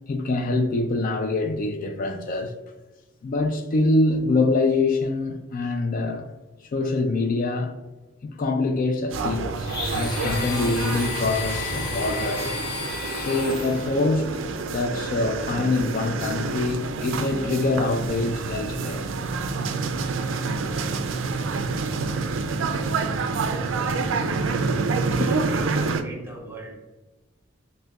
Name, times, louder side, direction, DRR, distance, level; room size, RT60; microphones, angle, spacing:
voice 1, 0.1-2.5 3.2-6.3 6.7-7.8 8.2-12.6 13.1-14.4 14.7-19.1 19.5-19.6 24.9-25.3, left 2 dB, 45° left, 0.3 m, -25 dB
sound 1, 9.1-26.0, right 4 dB, 65° right, 0.4 m, -28 dB
Domestic sounds home sounds, 9.6-14.1, left 2 dB, 60° left, 1.0 m, -32 dB
voice 2, 23.4-24.3 25.1-26.7, right 2 dB, 10° right, 0.7 m, -39 dB
6.1 x 2.2 x 2.3 m
head